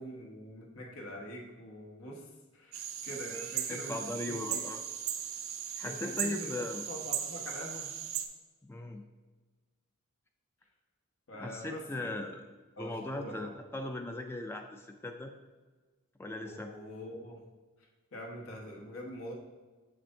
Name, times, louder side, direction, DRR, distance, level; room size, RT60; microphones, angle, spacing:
voice 1, 0.0-4.6 5.8-7.9 11.3-12.3 12.8-13.5 16.4-17.4 18.1-19.3, equal, 90° left, -1 dB, 1.4 m, -44 dB
sound 1, 2.7-8.3, right 9 dB, 75° right, 0.6 m, -37 dB
voice 2, 3.7-4.8 5.8-6.9 8.6-9.0 11.3-12.4 12.8-15.3 16.2-16.7, left 2 dB, 10° left, 4 dB, 0.3 m, -38 dB
7.5 x 6.7 x 2.7 m, 1.3 s
head